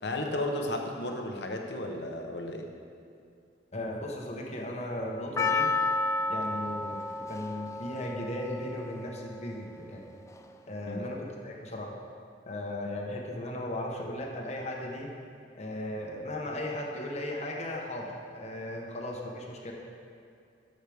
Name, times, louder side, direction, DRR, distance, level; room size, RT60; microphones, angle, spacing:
voice 1, 0.0-2.7 10.9-11.0, left 1 dB, 65° left, 2 dB, 1.0 m, -33 dB
voice 2, 3.7-5.7 6.3-7.0 7.3-10.0 10.7-11.9 12.5-15.1 15.5-19.7, left 1 dB, 40° left, -1 dB, 1.1 m, -36 dB
Percussion, 5.4-9.7 10.4-10.5, left 3 dB, 15° left, 0.3 m, -31 dB
13.0 x 6.4 x 3.5 m, 2.4 s
head